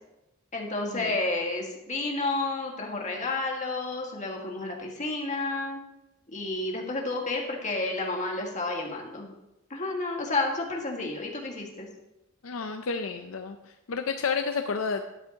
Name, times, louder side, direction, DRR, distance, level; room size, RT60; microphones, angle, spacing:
voice 1, 0.5-5.8 6.3-9.3 9.7-11.9, left 2 dB, 35° left, 0 dB, 1.7 m, -31 dB
voice 2, 12.4-13.6 13.9-15.0, left 5 dB, 70° left, 7 dB, 0.5 m, -30 dB
12.5 x 9.5 x 2.9 m, 0.91 s
head